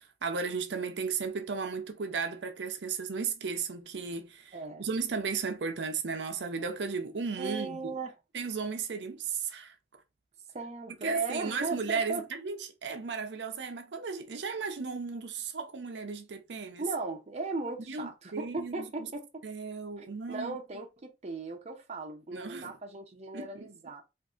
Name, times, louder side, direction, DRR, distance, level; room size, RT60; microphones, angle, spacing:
voice 1, 0.0-7.8 8.3-9.7 11.0-16.8 17.9-19.1 19.4-20.6 22.3-22.8 23.3-23.7, right 5 dB, 85° right, 0.6 m, -35 dB
voice 2, 4.5-4.9 7.4-8.1 10.5-12.3 16.8-19.4 20.0-24.0, right 3 dB, 40° right, 0.6 m, -37 dB
3.7 x 2.5 x 2.4 m
head